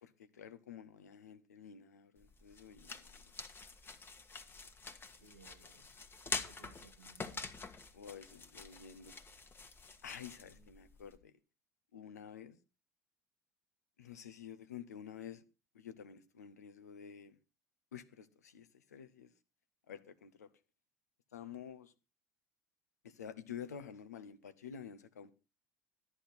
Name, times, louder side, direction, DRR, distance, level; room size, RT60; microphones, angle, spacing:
voice 1, 0.0-3.2 7.9-9.2 10.0-11.3 11.9-12.6 14.0-15.4 15.7-17.4 17.9-19.3 19.9-20.5 21.3-21.9 23.0-25.3, left 8 dB, 75° left, 0.9 m, -50 dB
sound 1, 2.2-11.2, left 4 dB, 25° left, 1.4 m, -46 dB
voice 2, 5.1-5.9 6.2-7.5 10.4-10.8, right 5 dB, 85° right, 1.6 m, -62 dB
13.0 x 9.8 x 4.2 m
figure-of-eight pair, 65°, 9 cm